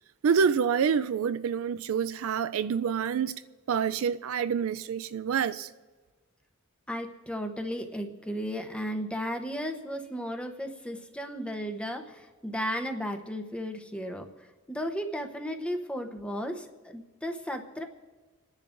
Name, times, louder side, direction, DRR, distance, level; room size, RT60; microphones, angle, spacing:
voice 1, 0.2-3.3 3.7-5.7, right 7 dB, 70° right, 0.4 m, -27 dB
voice 2, 6.9-14.3 14.7-17.8, equal, 5° left, 0.8 m, -34 dB
29.0 x 10.5 x 2.6 m
head